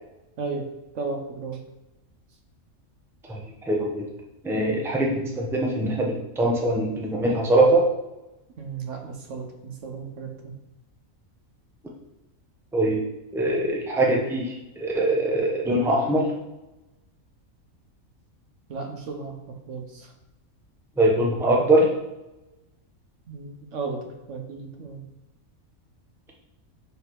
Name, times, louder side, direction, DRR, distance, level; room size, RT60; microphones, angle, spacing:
voice 1, 0.4-0.7 0.9-1.6 8.6-10.5 18.7-20.1 23.3-25.1, right 4 dB, 65° right, 4 dB, 1.0 m, -34 dB
voice 2, 3.7-4.0 4.4-7.9 12.7-13.0 13.3-16.3 21.0-21.9, right 1 dB, ahead, -1 dB, 0.7 m, -22 dB
5.1 x 4.6 x 4.6 m, 0.98 s
omnidirectional pair, 1.4 m